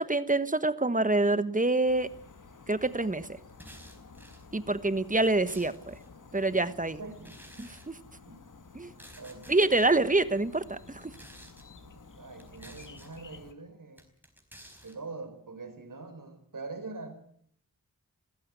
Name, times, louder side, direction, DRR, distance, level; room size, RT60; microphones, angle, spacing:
voice 1, 0.0-2.1 2.7-3.4 4.5-5.9 6.3-7.0 7.6-8.0 8.7-8.9 9.5-11.1, right 2 dB, 20° right, 13 dB, 1.3 m, -26 dB
sound 1, 1.8-13.5, left 4 dB, 55° left, 2.1 m, -52 dB
sound 2, 3.5-4.5 5.1-6.1 7.2-7.9 8.8-9.9 10.9-11.7 12.4-13.2 14.0-15.0, equal, 5° right, 4.6 m, -52 dB
voice 2, 7.0-7.3 8.2-8.4 9.2-9.9 11.7-14.0 14.8-17.2, right 3 dB, 60° right, 9 dB, 4.6 m, -44 dB
22.0 x 15.5 x 8.2 m, 0.67 s
wide cardioid pair, 75°, 36 cm